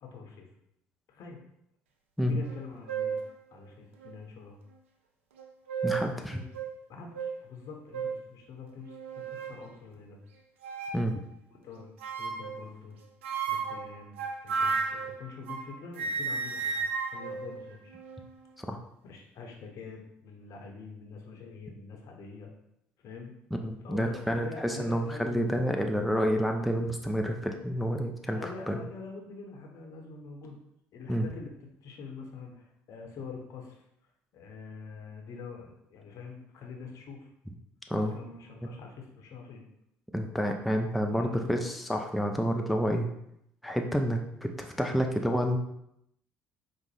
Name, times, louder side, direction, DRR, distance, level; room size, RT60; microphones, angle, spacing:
voice 1, 0.0-0.5 1.1-1.4 2.2-3.2 3.5-4.6 6.3-6.5 6.9-10.2 11.6-11.9 12.1-13.0 13.4-16.8 17.0-18.0 19.0-22.5 23.0-23.3 23.8-25.4 27.7-30.6 30.9-33.8 34.3-37.3 37.9-39.6 41.0-41.7, left 4 dB, 55° left, 2 dB, 0.8 m, -45 dB
sound 1, 2.5-2.6 2.9-3.3 4.0-4.1 5.4-6.1 6.5-6.7 7.1-7.3 7.9-8.2 8.9-9.6 10.6-11.1 12.0-12.6 13.2-15.7 16.0-18.3, right 5 dB, 85° right, 0.4 m, -33 dB
voice 2, 5.8-6.4 10.9-11.2 18.6-18.8 23.6-28.8 31.1-31.3 37.9-38.1 40.1-43.1 43.6-45.6, equal, ahead, 3 dB, 0.4 m, -29 dB
4.9 x 2.1 x 3.2 m, 0.78 s
hypercardioid pair, 55°, 7 cm